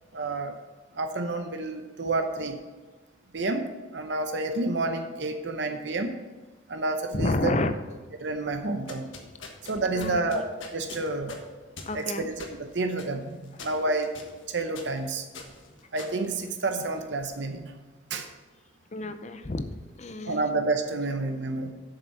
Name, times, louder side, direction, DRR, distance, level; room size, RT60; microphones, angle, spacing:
voice 1, 0.1-0.5 0.9-2.6 3.3-6.1 6.7-7.5 8.2-9.1 9.6-10.5 10.7-11.4 11.9-14.1 14.5-15.2 15.9-17.7 18.1-18.3 20.3-21.7, right 2 dB, 65° right, 6 dB, 0.7 m, -29 dB
voice 2, 7.1-7.7 9.9-10.4 11.9-12.3 18.9-19.7 20.0-20.5, left 2 dB, 35° left, 9 dB, 0.6 m, -30 dB
sound 1, 8.7-17.1, left 3 dB, 80° left, 1.4 m, -45 dB
7.8 x 6.9 x 5.6 m, 1.3 s
head